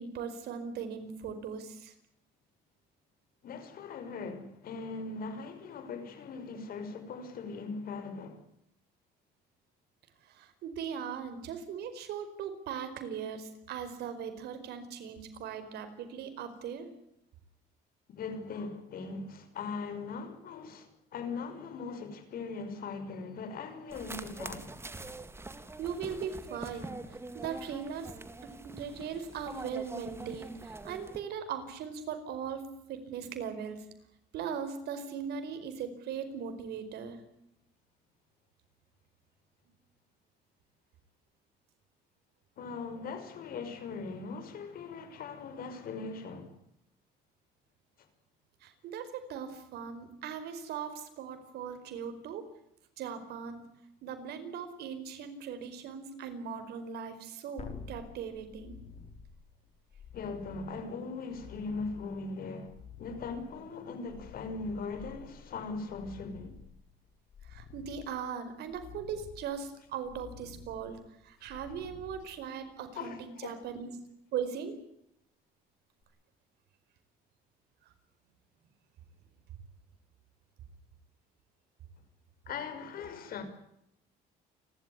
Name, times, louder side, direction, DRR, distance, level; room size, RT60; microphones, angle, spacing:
voice 1, 0.0-1.9 10.3-16.9 25.8-27.0 27.3-28.1 28.4-33.8 34.3-37.2 48.6-52.5 53.0-53.6 54.0-58.7 67.4-71.0 71.2-73.9 74.3-74.8, right 7 dB, 75° right, 4.9 m, -39 dB
voice 2, 3.4-8.4 18.1-24.7 42.6-46.6 60.1-66.6 73.0-73.6 82.5-83.4, left 4 dB, 60° left, 5.7 m, -40 dB
sound 1, 23.9-31.2, right 2 dB, 15° right, 2.3 m, -44 dB
sound 2, 57.6-72.9 76.0-76.1, left 5 dB, 40° left, 5.1 m, -51 dB
29.0 x 13.0 x 9.7 m
cardioid pair, 110°, 17 cm